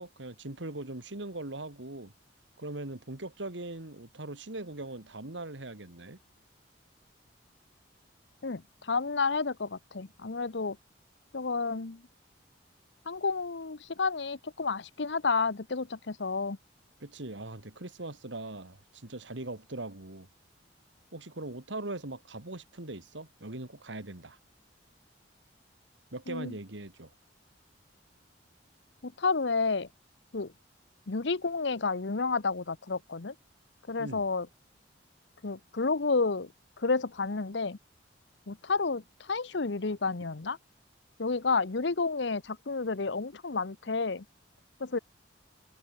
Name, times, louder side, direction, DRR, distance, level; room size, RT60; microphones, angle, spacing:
voice 1, 0.0-2.1 2.6-6.2 17.0-20.3 21.1-24.4 26.1-27.1 34.0-34.2, right 2 dB, 75° right, 2.4 m, -40 dB
voice 2, 8.4-10.8 11.3-12.0 13.1-16.6 26.3-26.6 29.0-29.9 30.3-30.5 31.1-33.3 33.9-34.5 35.4-36.5 36.8-37.8 38.5-40.6 41.2-44.2 44.8-45.0, left 4 dB, 70° left, 0.9 m, -30 dB
head